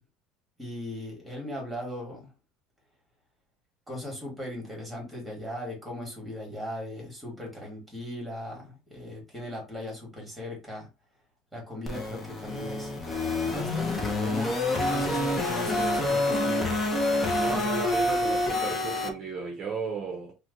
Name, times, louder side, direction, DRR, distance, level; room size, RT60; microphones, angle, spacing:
voice 1, 0.6-2.3 3.9-10.9 11.5-12.9 13.4-14.6 14.9-16.8, left 1 dB, 5° right, 1.4 m, -38 dB
sound 1, 11.9-19.1, left 2 dB, 15° left, 0.6 m, -27 dB
voice 2, 17.4-20.3, right 4 dB, 30° right, 0.7 m, -34 dB
2.9 x 2.1 x 3.7 m
cardioid pair, 170°, 0 cm